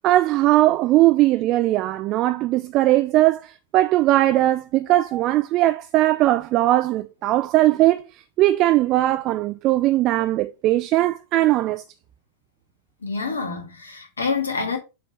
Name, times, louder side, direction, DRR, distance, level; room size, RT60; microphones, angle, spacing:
voice 1, 0.0-8.0 8.4-11.8, right 15 dB, 40° right, 0.4 m, -19 dB
voice 2, 13.0-14.8, left 4 dB, 75° left, 1.8 m, -27 dB
7.1 x 3.0 x 5.4 m
figure-of-eight pair, 90°, 0 cm